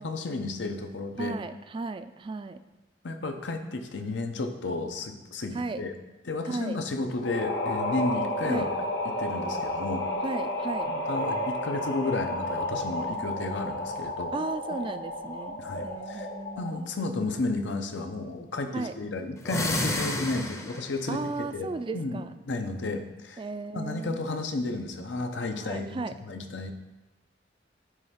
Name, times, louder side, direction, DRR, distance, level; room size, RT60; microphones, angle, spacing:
voice 1, 0.0-1.3 3.0-5.9 6.2-8.7 9.0-10.1 10.9-14.3 15.6-16.3 16.6-23.4 23.7-26.7, left 2 dB, 80° left, 5 dB, 0.8 m, -32 dB
voice 2, 1.2-2.6 5.5-5.9 6.5-6.8 8.4-8.7 10.2-11.0 14.3-16.8 18.7-19.0 21.1-22.3 23.4-24.3 25.6-26.1, right 3 dB, 30° right, 11 dB, 0.3 m, -35 dB
sound 1, 7.2-16.9, left 1 dB, 65° left, 1.1 m, -32 dB
sound 2, 19.4-21.0, left 1 dB, 15° left, 0.6 m, -30 dB
9.5 x 3.3 x 5.6 m, 1.0 s
head